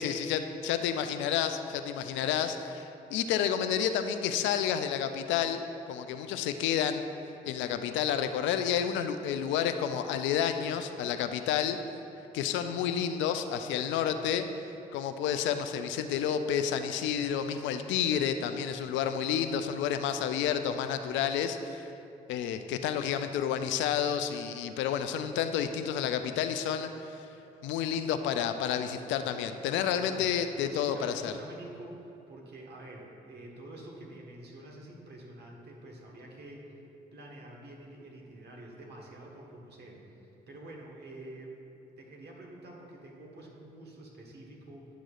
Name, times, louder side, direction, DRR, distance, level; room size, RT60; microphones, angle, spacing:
voice 1, 0.0-5.6 5.9-7.0 7.5-11.8 12.3-14.5 14.9-21.9 22.3-26.9 27.2-27.3 27.6-31.3, left 8 dB, 75° left, 8 dB, 0.4 m, -30 dB
voice 2, 29.9-30.4 30.6-36.8 37.1-41.5 42.0-44.9, right 1 dB, 60° right, -1 dB, 1.4 m, -47 dB
10.0 x 6.1 x 2.4 m, 2.8 s
hypercardioid pair, 45°, 20 cm